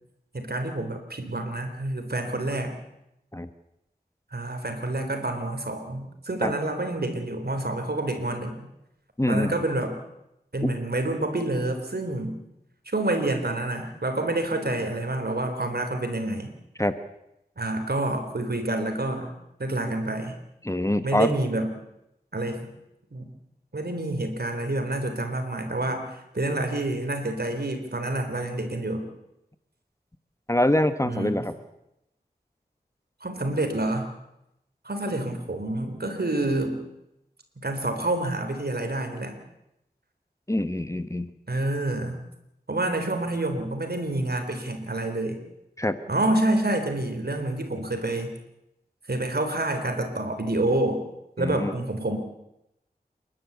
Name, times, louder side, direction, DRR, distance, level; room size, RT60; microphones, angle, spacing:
voice 1, 0.3-2.7 4.3-8.7 9.3-10.0 10.5-12.4 12.9-16.5 17.6-19.3 19.6-20.3 21.0-21.7 22.3-22.7 23.1-23.3 23.7-29.1 31.0-31.4 33.2-34.1 34.8-36.8 37.6-39.4 41.5-42.2 42.7-45.4 46.1-48.3 49.1-51.0 51.4-52.2, right 2 dB, 70° right, 6 dB, 3.8 m, -28 dB
voice 2, 9.2-9.5 10.6-10.7 16.8-17.0 20.6-21.3 30.5-31.5 40.5-41.3 45.8-46.0 51.4-51.7, left 1 dB, 20° left, 11 dB, 1.1 m, -24 dB
28.0 x 12.0 x 8.4 m, 0.86 s
wide cardioid pair, 45°, 17 cm